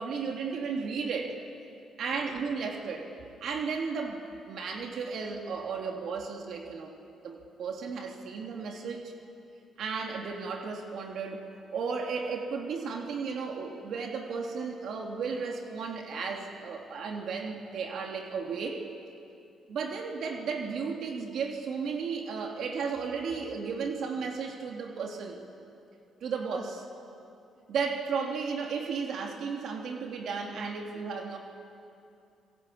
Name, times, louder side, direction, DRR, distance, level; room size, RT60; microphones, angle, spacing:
voice 1, 0.0-1.4 2.0-3.1 3.4-6.9 7.2-9.1 9.8-18.8 19.7-25.4 26.2-26.9 27.7-31.4, right 5 dB, 70° right, 2 dB, 2.9 m, -34 dB
28.0 x 21.0 x 8.6 m, 2.6 s
cardioid pair, 90°, 0 cm